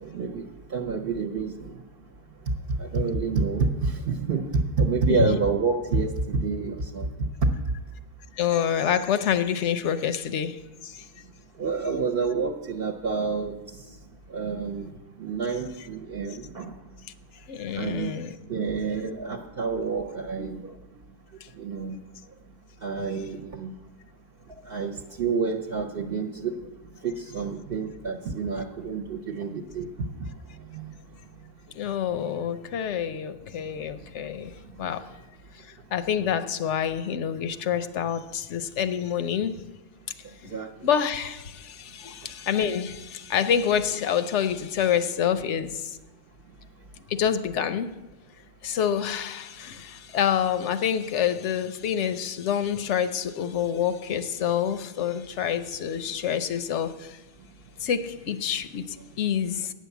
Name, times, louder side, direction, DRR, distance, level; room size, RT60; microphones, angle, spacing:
voice 1, 0.0-0.4 0.7-1.7 2.8-7.1 7.4-7.5 11.6-13.5 14.3-14.9 15.2-16.7 17.8-18.1 18.5-20.7 21.6-22.0 22.8-23.7 24.7-24.9 25.2-26.5 27.0-29.9 30.7-30.9 40.5-40.7, right 4 dB, 60° right, 2 dB, 0.9 m, -28 dB
voice 2, 8.4-11.0 17.5-18.4 31.7-35.1 35.6-39.7 40.4-46.0 47.1-48.0 48.6-57.2 57.8-59.7, left 8 dB, 90° left, 12 dB, 1.0 m, -27 dB
9.1 x 6.4 x 8.1 m, 1.1 s
omnidirectional pair, 1.2 m